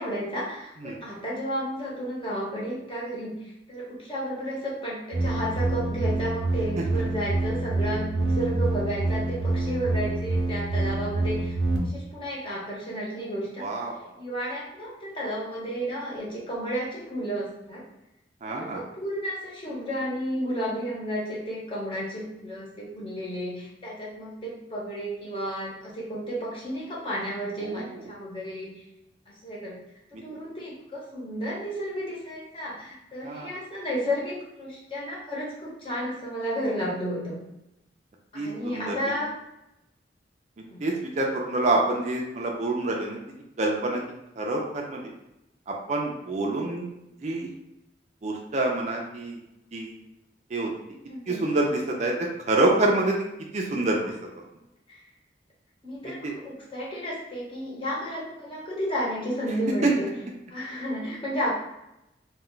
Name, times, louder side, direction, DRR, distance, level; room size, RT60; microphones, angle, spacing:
voice 1, 0.0-13.7 14.2-17.8 18.4-28.7 29.3-29.8 30.1-37.4 38.3-39.3 40.7-40.9 51.1-51.5 54.9-55.0 55.8-60.1 60.5-61.5, equal, 30° left, -6 dB, 0.9 m, -32 dB
sound 1, 5.1-11.8, right 2 dB, 85° right, 0.6 m, -26 dB
voice 2, 13.6-13.9 18.4-18.8 27.6-27.7 33.2-33.5 38.3-39.1 40.8-43.2 43.6-44.0 44.4-45.0 45.7-46.9 47.2-47.5 48.2-49.4 49.7-49.9 50.5-50.7 51.3-53.2 53.5-54.0 56.0-56.3 59.8-59.9, right 2 dB, 40° right, 0 dB, 0.4 m, -26 dB
2.2 x 2.2 x 3.8 m, 0.88 s
head